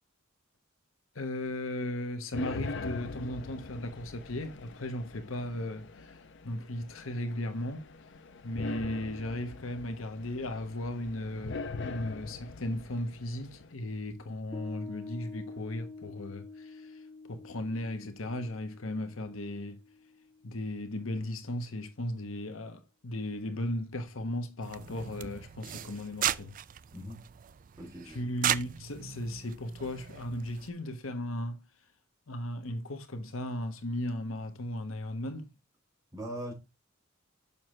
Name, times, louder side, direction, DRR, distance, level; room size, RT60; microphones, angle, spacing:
voice 1, 1.1-7.9 8.4-17.0 17.3-19.8 20.4-26.5 28.1-31.6 32.3-35.5, left 1 dB, 80° left, 1.2 m, -36 dB
sound 1, 2.3-13.7, left 3 dB, 60° left, 0.7 m, -42 dB
Piano, 14.5-21.3, left 3 dB, 15° left, 1.4 m, -48 dB
sound 2, 24.6-30.7, right 10 dB, 40° right, 0.4 m, -36 dB
voice 2, 26.9-27.3 27.8-28.2 36.1-36.5, right 1 dB, 15° right, 3.1 m, -40 dB
7.1 x 6.0 x 3.2 m
head